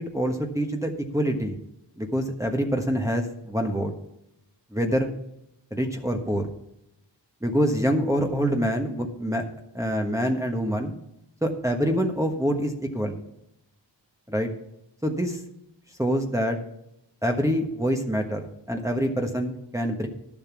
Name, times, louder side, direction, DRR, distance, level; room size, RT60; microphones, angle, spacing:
voice 1, 0.1-1.5 2.0-3.9 4.7-5.1 5.7-6.5 7.4-9.4 9.7-11.0 11.4-13.2 14.3-14.5 15.0-15.4 16.0-16.6 17.2-20.1, equal, 5° right, 2 dB, 1.3 m, -25 dB
11.5 x 7.3 x 6.0 m, 0.82 s
wide cardioid pair, 65°, 44 cm